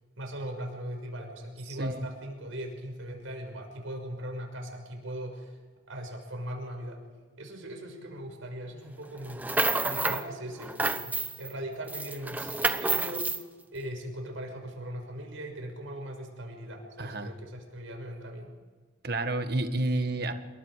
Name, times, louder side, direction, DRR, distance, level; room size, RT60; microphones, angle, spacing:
voice 1, 0.2-5.5 5.9-7.0 7.4-9.5 9.8-12.5 12.8-13.3 13.7-18.5, equal, 80° right, 3 dB, 5.9 m, -39 dB
voice 2, 1.7-2.1 17.0-17.3 19.0-20.3, right 2 dB, 50° right, 8 dB, 1.5 m, -30 dB
sound 1, 9.2-10.3 10.6-11.5 11.9-13.4, right 2 dB, 10° right, 0.8 m, -29 dB
27.5 x 22.0 x 5.0 m, 1.4 s
head